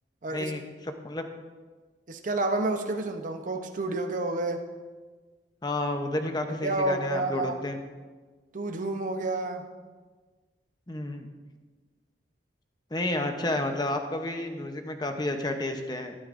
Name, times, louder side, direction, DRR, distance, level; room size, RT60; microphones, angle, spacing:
voice 1, 0.3-1.2 5.6-7.8 10.9-11.3 12.9-16.2, left 1 dB, 25° left, 5 dB, 0.8 m, -31 dB
voice 2, 2.1-4.6 6.6-7.6 8.5-9.6, right 2 dB, 45° right, 5 dB, 0.8 m, -29 dB
12.5 x 12.5 x 2.6 m, 1.4 s
head